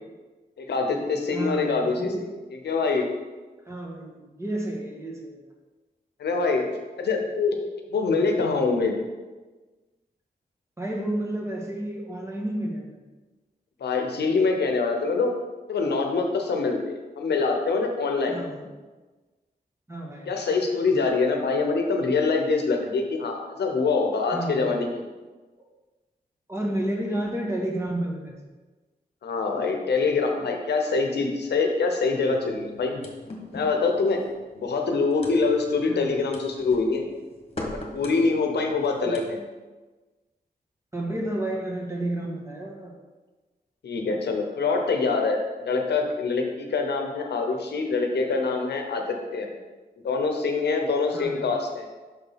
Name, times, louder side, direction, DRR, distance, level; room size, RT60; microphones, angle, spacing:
voice 1, 0.6-2.1 2.6-3.1 6.2-7.6 7.9-8.9 13.8-15.3 15.7-18.4 20.3-25.1 29.2-33.0 33.5-34.2 34.5-37.1 37.7-39.4 43.8-49.0 49.3-49.5 50.0-51.9, left 4 dB, 90° left, 3 dB, 0.8 m, -25 dB
voice 2, 1.3-2.2 3.7-5.4 8.4-8.5 10.8-13.0 18.3-18.7 19.9-20.3 24.3-24.8 26.5-28.3 35.9-36.2 39.0-39.2 40.9-42.9 51.1-51.4, right 1 dB, 15° right, -1 dB, 1.7 m, -31 dB
sound 1, 32.3-39.3, left 2 dB, 35° left, 1.6 m, -41 dB
6.1 x 4.0 x 5.6 m, 1.3 s
cardioid pair, 50°, 17 cm